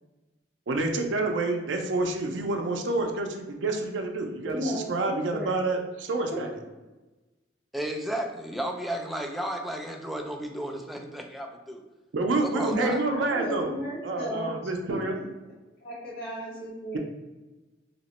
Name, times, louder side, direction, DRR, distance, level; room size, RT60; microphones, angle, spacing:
voice 1, 0.7-6.5 12.1-13.7 14.0-15.2, right 2 dB, 85° right, 4 dB, 0.5 m, -28 dB
voice 2, 4.4-5.6 12.7-14.5 15.1-15.2 15.8-17.0, equal, 60° left, -6 dB, 1.1 m, -34 dB
voice 3, 7.7-11.8 12.4-13.0, right 1 dB, ahead, 2 dB, 0.3 m, -33 dB
2.8 x 2.1 x 4.0 m, 1.1 s
head